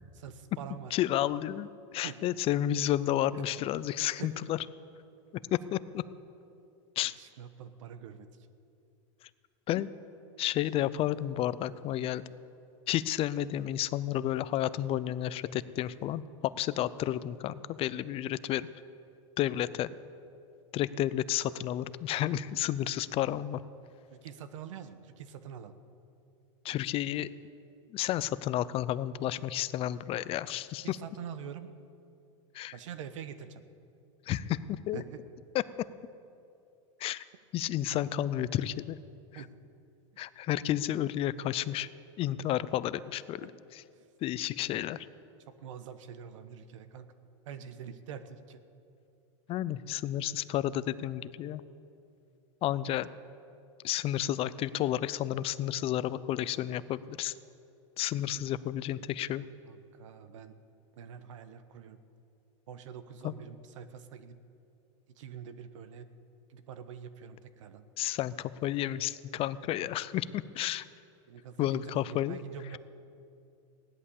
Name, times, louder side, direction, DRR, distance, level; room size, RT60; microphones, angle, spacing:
voice 1, 0.1-0.9 2.0-2.2 4.2-4.3 7.2-8.3 24.1-25.7 30.8-31.7 32.7-33.6 34.9-35.2 39.3-39.5 43.4-43.5 44.0-44.1 45.5-47.1 47.4-48.6 59.7-60.6 61.0-62.0 62.7-64.4 65.2-66.1 66.5-67.8 71.3-72.8, right 8 dB, 80° right, 12 dB, 1.1 m, -45 dB
voice 2, 0.9-4.6 5.5-6.0 7.0-7.1 9.7-9.9 10.4-12.2 12.9-18.7 19.4-19.9 20.7-23.6 26.6-27.3 27.9-31.0 32.5-32.7 34.3-35.0 37.0-37.2 37.5-39.0 39.3-39.4 40.2-41.9 42.2-43.8 44.2-45.1 49.5-51.6 52.6-53.1 53.8-57.3 58.0-59.5 63.2-63.3 68.0-70.9 71.6-72.4, left 12 dB, 35° left, 16 dB, 0.5 m, -31 dB
16.5 x 11.0 x 7.1 m, 2.6 s
supercardioid pair, 120°, 16 cm